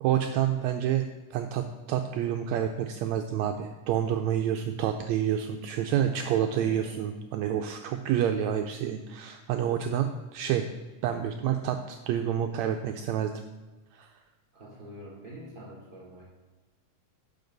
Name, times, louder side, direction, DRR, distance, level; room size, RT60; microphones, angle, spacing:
voice 1, 0.0-10.7 11.0-13.3 13.9-14.1, right 10 dB, 85° right, 5 dB, 1.6 m, -28 dB
voice 2, 5.8-6.9 14.5-16.2, equal, 15° right, -6 dB, 3.2 m, -45 dB
10.0 x 6.9 x 3.9 m, 1.3 s
omnidirectional pair, 3.6 m